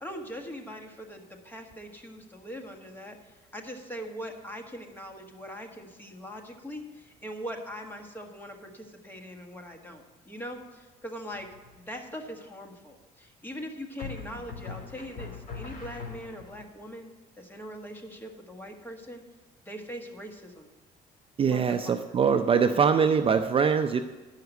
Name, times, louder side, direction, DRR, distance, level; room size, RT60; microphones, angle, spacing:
voice 1, 0.0-11.5 11.7-17.1 17.4-19.2 19.6-20.7 21.5-22.0, equal, 10° left, 3 dB, 1.6 m, -41 dB
sound 1, 11.3-11.9 14.0-16.7, left 5 dB, 45° left, 3.3 m, -41 dB
voice 2, 21.4-24.0, right 6 dB, 35° right, 7 dB, 0.5 m, -23 dB
10.5 x 5.8 x 8.1 m, 1.3 s
cardioid pair, 110°, 17 cm